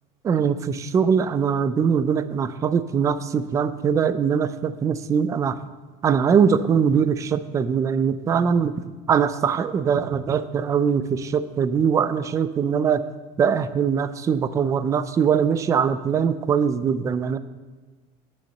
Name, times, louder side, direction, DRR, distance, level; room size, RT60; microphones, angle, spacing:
voice 1, 0.2-5.6 6.0-8.7 9.1-13.0 13.4-17.4, right 7 dB, 20° right, 14 dB, 0.3 m, -22 dB
9.4 x 7.1 x 6.5 m, 1.3 s
cardioid pair, 165°, 17 cm